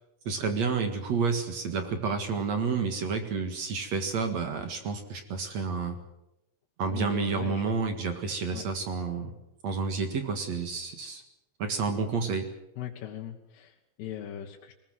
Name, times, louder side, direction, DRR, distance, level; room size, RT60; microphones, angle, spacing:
voice 1, 0.3-6.0 6.8-9.3 9.6-11.2 11.6-12.5, right 5 dB, 50° right, 7 dB, 2.5 m, -30 dB
voice 2, 6.9-7.8 8.5-8.6 12.8-14.7, left 11 dB, 80° left, 0 dB, 3.5 m, -39 dB
21.5 x 20.5 x 7.8 m, 0.87 s
omnidirectional pair, 4.6 m